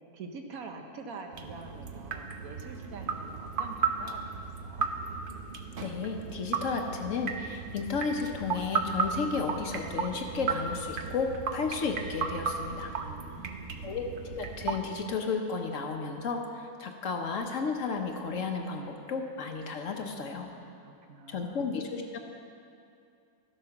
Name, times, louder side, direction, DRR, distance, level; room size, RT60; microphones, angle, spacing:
voice 1, 0.1-4.4 4.6-4.9 12.9-14.0 20.1-21.8, right 4 dB, 65° right, 4 dB, 1.3 m, -46 dB
sound 1, 1.3-14.8, right 5 dB, 50° right, 0.6 m, -35 dB
voice 2, 5.8-12.9 13.8-20.5 21.3-22.2, left 4 dB, 60° left, 4 dB, 1.1 m, -33 dB
12.5 x 8.0 x 5.8 m, 2.4 s
omnidirectional pair, 1.7 m